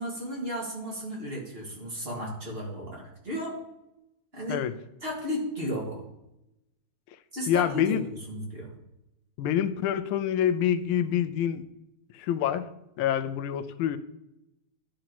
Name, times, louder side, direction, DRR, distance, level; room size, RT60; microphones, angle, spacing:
voice 1, 0.0-3.6 4.3-4.6 5.0-6.0 7.3-8.0 8.3-8.7, equal, 30° right, -3 dB, 1.7 m, -34 dB
voice 2, 7.5-8.0 9.4-11.6 12.1-12.7 13.0-14.0, left 10 dB, 75° left, 11 dB, 1.4 m, -26 dB
11.5 x 5.1 x 3.0 m, 0.89 s
omnidirectional pair, 2.4 m